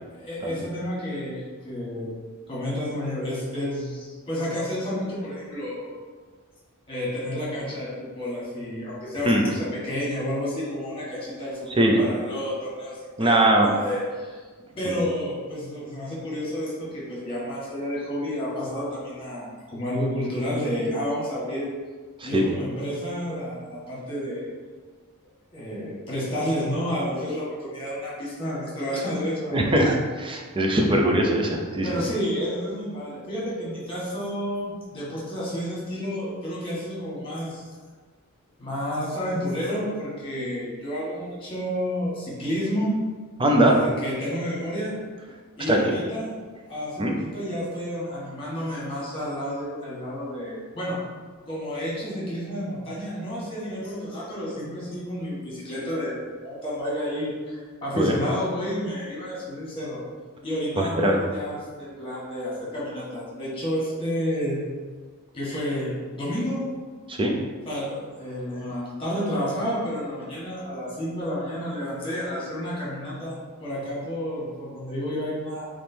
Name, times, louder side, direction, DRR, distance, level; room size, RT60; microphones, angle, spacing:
voice 1, 0.1-2.1 2.5-6.0 6.9-14.4 14.8-21.7 22.2-24.5 25.5-29.9 31.8-37.6 38.6-43.0 43.7-44.9 45.5-46.3 46.7-51.0 51.5-56.2 56.4-60.0 60.4-64.7 65.3-66.6 67.6-75.6, equal, 25° left, -6 dB, 1.5 m, -30 dB
voice 2, 13.2-13.7 14.8-15.0 22.2-22.4 29.5-32.0 43.4-43.8 45.7-45.8 47.0-47.2 58.0-58.1 60.8-61.1 67.1-67.4, right 1 dB, 25° right, 1 dB, 0.5 m, -21 dB
3.5 x 3.1 x 4.3 m, 1.5 s
head